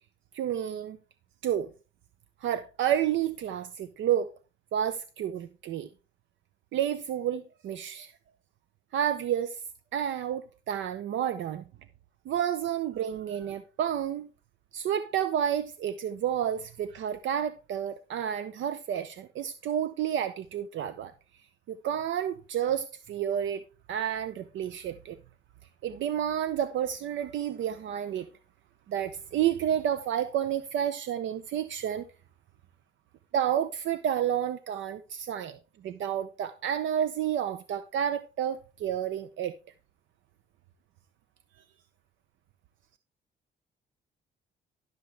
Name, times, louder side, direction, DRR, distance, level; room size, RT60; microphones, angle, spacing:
voice 1, 0.3-1.0 1.4-1.7 2.4-4.3 4.7-5.9 6.7-8.1 8.9-9.6 9.9-11.6 12.3-14.3 14.7-21.1 21.7-23.6 23.9-25.2 25.8-28.3 28.9-32.1 33.3-39.5, right 10 dB, 75° right, 0.6 m, -30 dB
12.5 x 6.6 x 3.4 m
cardioid pair, 90°, 20 cm